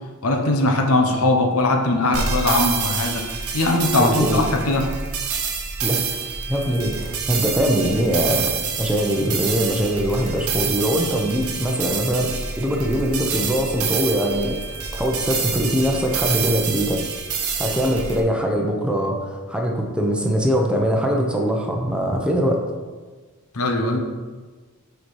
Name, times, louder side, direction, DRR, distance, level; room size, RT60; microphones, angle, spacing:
voice 1, 0.2-3.2 3.5-4.9 23.5-24.0, left 2 dB, 70° left, 3 dB, 0.9 m, -20 dB
sound 1, 2.1-18.2, right 6 dB, 75° right, 1.1 m, -27 dB
voice 2, 4.0-4.4 5.8-17.0 17.6-22.6, equal, 5° right, 1 dB, 0.8 m, -22 dB
7.1 x 4.4 x 4.7 m, 1.4 s
head